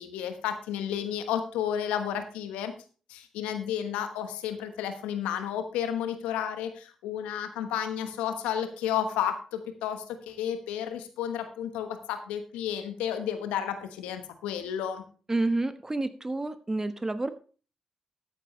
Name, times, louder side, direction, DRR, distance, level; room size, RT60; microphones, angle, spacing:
voice 1, 0.0-2.7 3.1-15.0, left 9 dB, 85° left, 9 dB, 1.2 m, -32 dB
voice 2, 15.3-17.3, right 2 dB, 25° right, 11 dB, 1.3 m, -29 dB
13.5 x 9.4 x 3.2 m, 0.38 s
hypercardioid pair, 40°, 2 cm